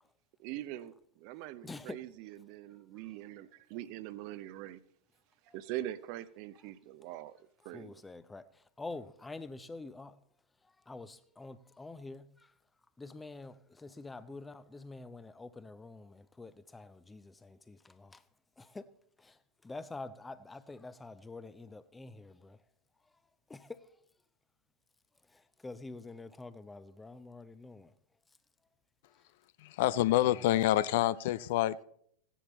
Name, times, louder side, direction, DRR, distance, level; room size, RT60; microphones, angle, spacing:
voice 1, 0.4-4.8 5.5-7.9, right 14 dB, 45° right, 0.7 m, -43 dB
voice 2, 1.6-2.0 5.5-5.6 7.7-10.2 10.6-12.5 13.0-18.3 18.6-18.9 19.2-22.6 23.5-23.9 25.3-27.9 30.2-30.5, left 3 dB, 10° left, 0.7 m, -47 dB
voice 3, 29.6-31.8, left 14 dB, 50° left, 0.4 m, -27 dB
16.5 x 10.0 x 4.1 m
figure-of-eight pair, 90°, 0 cm